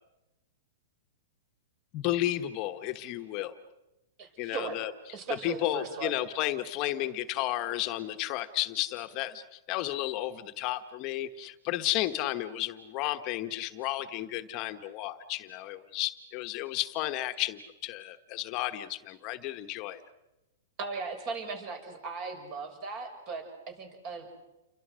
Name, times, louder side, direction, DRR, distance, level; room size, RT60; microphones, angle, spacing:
voice 1, 1.9-3.6 4.4-4.9 5.3-20.0, left 15 dB, 40° left, 8 dB, 1.2 m, -33 dB
voice 2, 4.2-4.8 5.1-6.1 20.8-24.3, right 4 dB, 40° right, 6 dB, 6.7 m, -38 dB
29.0 x 24.0 x 6.4 m, 0.99 s
hypercardioid pair, 140°, 0 cm